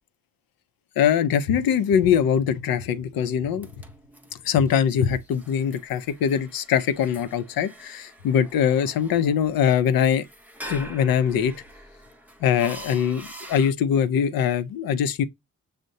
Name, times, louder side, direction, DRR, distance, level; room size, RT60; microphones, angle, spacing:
voice 1, 1.0-3.7 4.5-10.3 10.7-11.5 12.4-15.2, left 8 dB, 75° left, 0.5 m, -22 dB
sound 1, 3.3-13.7, right 1 dB, 5° right, 0.6 m, -44 dB
6.3 x 2.1 x 2.6 m
cardioid pair, 75°, 35 cm